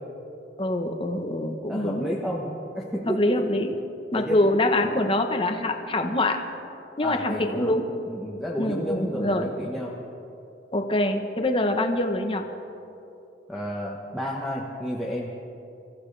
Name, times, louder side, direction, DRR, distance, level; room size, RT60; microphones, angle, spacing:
voice 1, 0.6-2.1 3.1-3.7 4.1-6.4 7.0-7.9 8.6-9.5 10.7-12.4, left 1 dB, 30° left, 5 dB, 1.0 m, -24 dB
voice 2, 1.7-2.5 2.7-3.2 4.1-4.5 7.0-7.8 8.1-9.9 13.5-15.3, equal, ahead, -4 dB, 1.1 m, -31 dB
25.0 x 14.5 x 3.3 m, 2.8 s
head